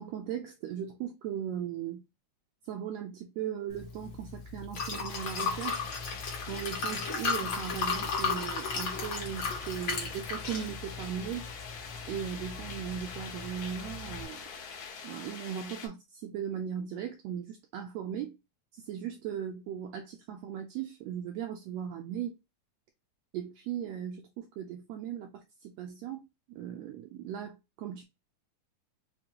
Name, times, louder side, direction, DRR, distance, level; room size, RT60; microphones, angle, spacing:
voice 1, 0.0-2.0 2.6-5.9 6.5-11.5 12.1-14.4 15.0-18.4 18.7-22.4 23.3-28.0, right 9 dB, 80° right, 1.5 m, -38 dB
Liquid, 3.7-14.2, left 4 dB, 55° left, 1.4 m, -36 dB
sound 1, 5.1-15.9, left 6 dB, 70° left, 2.5 m, -44 dB
5.2 x 2.2 x 2.8 m
omnidirectional pair, 3.5 m